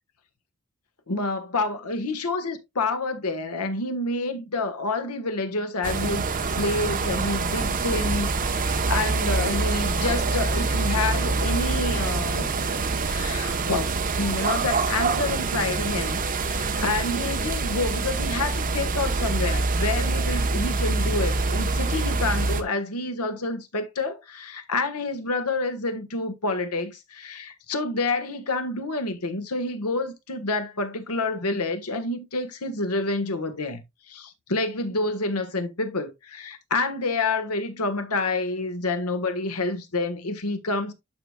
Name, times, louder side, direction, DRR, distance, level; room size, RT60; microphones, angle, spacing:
voice 1, 1.1-6.3 6.5-12.5 13.0-40.9, left 3 dB, 80° left, 1.3 m, -28 dB
sound 1, 5.8-22.6, right 3 dB, 40° right, 0.9 m, -25 dB
12.0 x 4.9 x 2.3 m
head